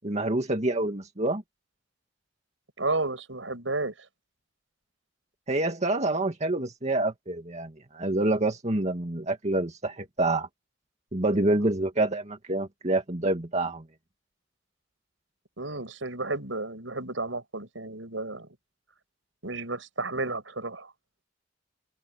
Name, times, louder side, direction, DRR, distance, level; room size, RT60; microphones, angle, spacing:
voice 1, 0.0-1.4 5.5-10.5 11.1-13.8, right 2 dB, 35° right, 2.1 m, -27 dB
voice 2, 2.8-3.9 15.6-18.5 19.4-20.9, right 2 dB, 85° right, 6.6 m, -32 dB
open air
head